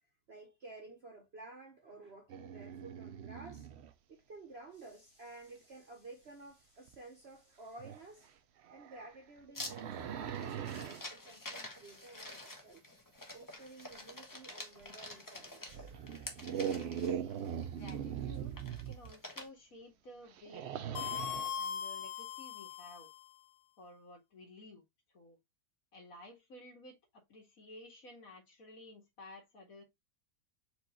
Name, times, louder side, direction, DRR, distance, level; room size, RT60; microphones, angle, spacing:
voice 1, 0.3-3.7 4.1-8.4 8.7-12.9 13.3-15.9, right 2 dB, 50° right, 0.9 m, -53 dB
sound 1, 2.3-3.9 6.9-7.0 7.8-8.0 8.6-11.0 14.8-14.9 15.7-19.1 20.3-21.6, right 8 dB, 90° right, 0.5 m, -41 dB
sound 2, 9.5-19.5, left 2 dB, 25° left, 0.5 m, -48 dB
voice 2, 16.6-17.2 17.8-18.6 18.9-23.1 23.8-24.8 25.1-25.4 25.9-29.8, left 1 dB, 55° left, 1.9 m, -54 dB
sound 3, 20.9-23.3, left 8 dB, 80° left, 1.1 m, -40 dB
4.6 x 2.5 x 4.2 m
omnidirectional pair, 1.7 m